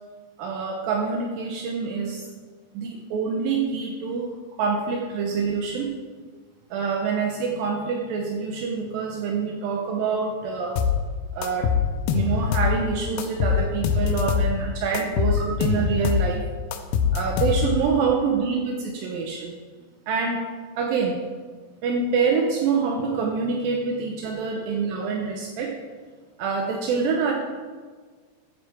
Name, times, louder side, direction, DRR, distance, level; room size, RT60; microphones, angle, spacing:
voice 1, 0.4-2.3 2.7-6.0 6.7-10.9 11.3-11.7 12.1-16.4 17.1-19.5 20.1-21.2 21.8-25.7 26.4-27.3, right 5 dB, 75° right, 1 dB, 2.6 m, -26 dB
sound 1, 10.8-11.0 11.4-12.8 13.2-14.5 15.0-16.3 16.7-17.9, left 7 dB, 85° left, 2.8 m, -23 dB
14.0 x 9.5 x 4.4 m, 1.5 s
omnidirectional pair, 4.4 m